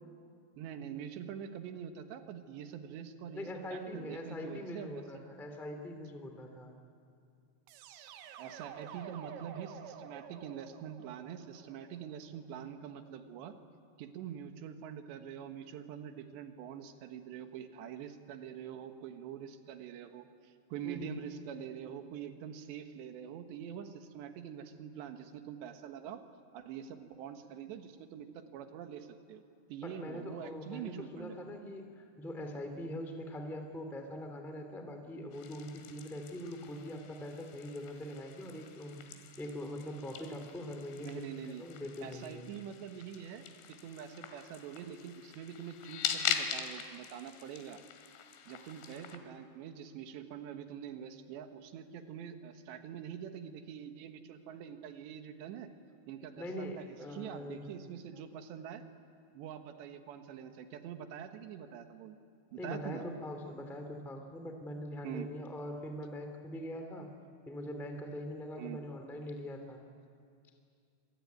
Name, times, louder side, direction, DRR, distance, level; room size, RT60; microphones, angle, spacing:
voice 1, 0.6-5.2 8.4-13.5 14.0-26.2 26.5-29.4 29.7-31.4 41.0-41.6 42.0-47.8 48.5-55.7 56.1-58.8 59.3-62.2 62.5-63.0 65.0-65.3 68.6-68.8, right 8 dB, 70° right, 7 dB, 3.3 m, -45 dB
voice 2, 3.3-6.7 20.8-21.2 29.8-39.0 39.4-42.4 56.4-57.7 62.6-67.1 67.4-69.8, left 1 dB, 5° left, 4 dB, 0.4 m, -42 dB
sound 1, 7.7-12.6, right 8 dB, 85° right, 3.9 m, -50 dB
sound 2, 35.3-49.2, left 8 dB, 85° left, 4.4 m, -42 dB
26.0 x 23.5 x 9.5 m, 2.4 s
omnidirectional pair, 5.7 m